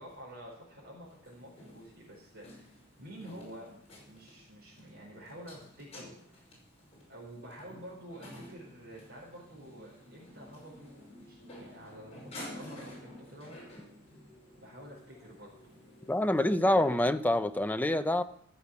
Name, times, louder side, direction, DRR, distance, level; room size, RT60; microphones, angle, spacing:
voice 1, 0.0-2.7 3.0-6.4 7.1-13.6 14.6-15.5 16.5-17.1, equal, 60° right, -6 dB, 4.8 m, -49 dB
sound 1, 1.1-16.6, left 1 dB, 30° left, 6.0 m, -51 dB
voice 2, 16.1-18.2, left 1 dB, 10° left, 9 dB, 0.6 m, -26 dB
15.0 x 7.1 x 7.2 m, 0.67 s
head